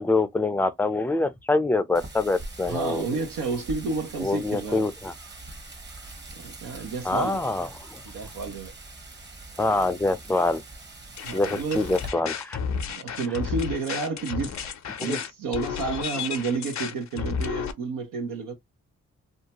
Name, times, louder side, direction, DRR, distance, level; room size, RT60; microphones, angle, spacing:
voice 1, 0.0-3.2 4.2-5.1 7.0-8.0 9.6-10.6 11.3-12.6 15.0-15.2, left 2 dB, 5° left, 0.5 m, -25 dB
Wind, 1.9-12.1, right 2 dB, 35° right, 1.0 m, -43 dB
voice 2, 2.6-4.9 6.3-7.4 8.0-8.7 11.2-11.9 12.9-14.6 15.0-18.5, right 4 dB, 80° right, 0.8 m, -30 dB
sound 1, 11.2-17.7, left 6 dB, 55° left, 0.6 m, -32 dB
2.7 x 2.2 x 2.8 m
supercardioid pair, 45°, 33 cm